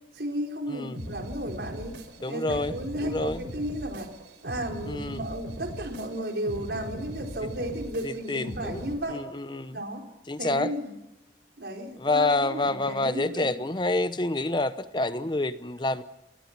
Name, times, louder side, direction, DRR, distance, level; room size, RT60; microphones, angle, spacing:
voice 1, 0.1-2.0 2.3-4.1 4.4-9.2 9.7-10.0 10.4-10.9 11.6-13.7, right 1 dB, 70° right, 3 dB, 4.6 m, -34 dB
sound 1, 0.9-8.9, equal, 90° right, 4.7 m, -40 dB
voice 2, 2.2-2.7 3.0-3.4 4.9-5.2 8.0-9.8 10.3-10.7 12.0-16.0, left 2 dB, 25° left, 13 dB, 0.8 m, -28 dB
29.0 x 21.5 x 6.1 m, 0.96 s
head